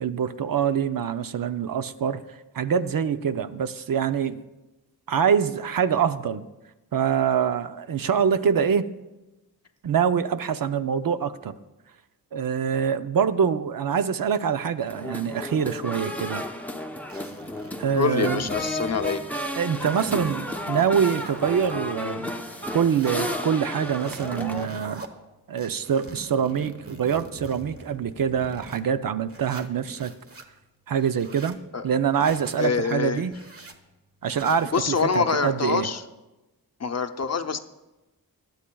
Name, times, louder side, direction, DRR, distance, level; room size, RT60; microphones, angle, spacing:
voice 1, 0.0-2.2 2.5-4.4 5.1-6.4 6.9-8.9 9.8-11.5 12.3-16.4 17.8-18.5 19.6-22.3 22.7-25.0 25.5-30.1 30.9-31.6 31.8-33.4 34.2-35.9, right 7 dB, 60° right, 11 dB, 0.6 m, -25 dB
sound 1, 14.9-24.7, left 1 dB, 5° left, 0.8 m, -33 dB
sound 2, 17.1-19.2 19.5-21.7 22.2-23.4 23.8-25.1 25.6-28.8 29.3-30.4 30.9-31.6 32.1-32.7 33.3-33.7 34.2-34.8, right 2 dB, 35° right, 1.1 m, -42 dB
voice 2, 17.9-19.2 31.7-31.9 32.6-33.2 34.7-36.0 36.8-37.6, left 5 dB, 45° left, 7 dB, 0.7 m, -25 dB
18.5 x 11.5 x 2.3 m, 1.0 s
cardioid pair, 60°, 38 cm